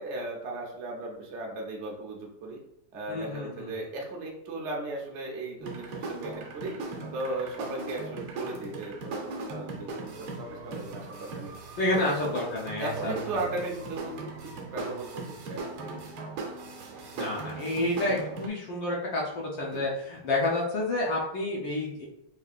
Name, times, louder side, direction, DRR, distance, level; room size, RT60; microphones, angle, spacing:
voice 1, 0.0-2.6 2.9-6.8 7.1-11.5 11.9-12.0 12.2-12.3 12.8-16.1 19.7-19.8, right 2 dB, 55° right, -1 dB, 0.8 m, -37 dB
voice 2, 3.1-3.7 11.8-13.1 17.2-22.1, left 2 dB, 65° left, -4 dB, 1.4 m, -29 dB
sound 1, 5.6-18.5, right 3 dB, 90° right, 1.7 m, -39 dB
4.8 x 2.7 x 2.4 m, 0.77 s
omnidirectional pair, 2.3 m